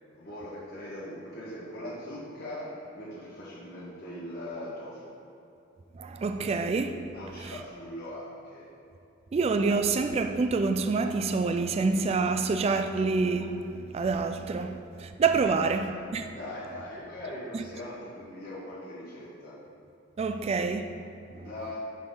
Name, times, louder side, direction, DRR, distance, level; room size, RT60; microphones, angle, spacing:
voice 1, 0.1-5.1 7.1-8.7 15.4-16.0 16.3-19.6 21.3-21.8, left 1 dB, 55° left, 1.6 m, -41 dB
voice 2, 6.0-7.0 9.3-13.6 13.9-16.3 17.5-17.6 20.2-21.0, right 4 dB, 35° right, 0.3 m, -27 dB
10.5 x 4.2 x 3.8 m
head